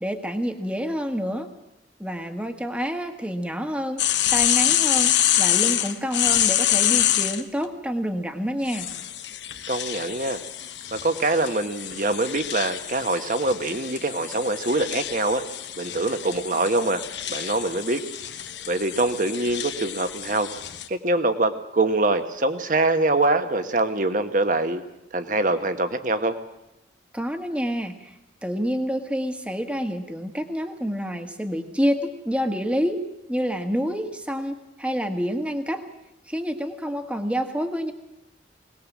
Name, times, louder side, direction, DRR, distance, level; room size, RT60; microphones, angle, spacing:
voice 1, 0.0-1.5 2.0-4.1 4.3-8.9 27.1-28.1 28.4-33.0 33.3-35.8 36.3-37.9, equal, 5° right, 6 dB, 1.5 m, -28 dB
sound 1, 4.0-7.4 8.7-20.9, left 11 dB, 85° left, 1.2 m, -26 dB
voice 2, 9.7-10.4 10.9-15.4 15.8-17.0 17.3-18.0 18.7-20.5 20.9-24.8 25.1-26.4, right 2 dB, 45° right, 9 dB, 1.4 m, -24 dB
21.5 x 19.0 x 7.4 m, 0.87 s
head